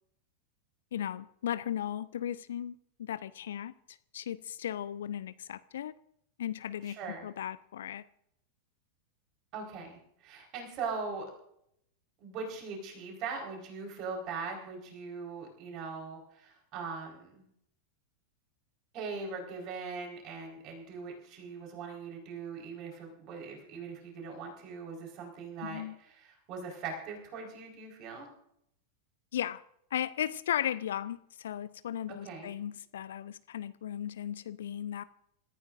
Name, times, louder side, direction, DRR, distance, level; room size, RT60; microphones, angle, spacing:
voice 1, 0.9-5.9 6.4-8.0 25.6-25.9 29.3-29.6 29.9-35.0, left 10 dB, 60° left, 0.5 m, -36 dB
voice 2, 6.8-7.3 9.5-11.3 12.2-17.4 18.9-28.3 32.1-32.5, right 4 dB, 40° right, 4.7 m, -41 dB
27.0 x 15.0 x 2.6 m
figure-of-eight pair, 90°, 0 cm